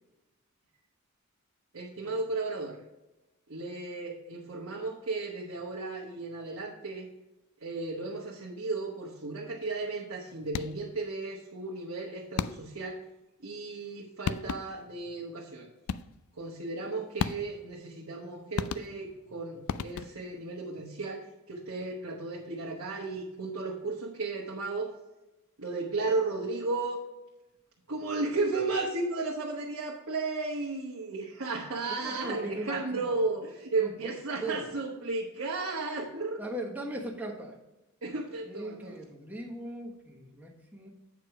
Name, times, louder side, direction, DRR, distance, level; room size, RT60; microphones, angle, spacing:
voice 1, 1.7-2.8 3.5-7.1 7.6-13.0 13.4-15.7 16.4-24.9 25.6-27.0 27.9-36.5 38.0-38.9, right 3 dB, 75° right, -3 dB, 1.1 m, -34 dB
sound 1, 10.5-11.0 12.4-12.9 13.9-14.0 14.3-14.9 15.9-16.3 17.2-17.7 18.6-19.2 19.7-20.4, left 6 dB, 75° left, 0.3 m, -35 dB
voice 2, 32.0-33.2 33.8-33.9 34.4-34.7 36.4-37.5 38.5-40.9, right 1 dB, 10° right, -1 dB, 1.3 m, -39 dB
8.2 x 4.8 x 4.8 m, 1.0 s
head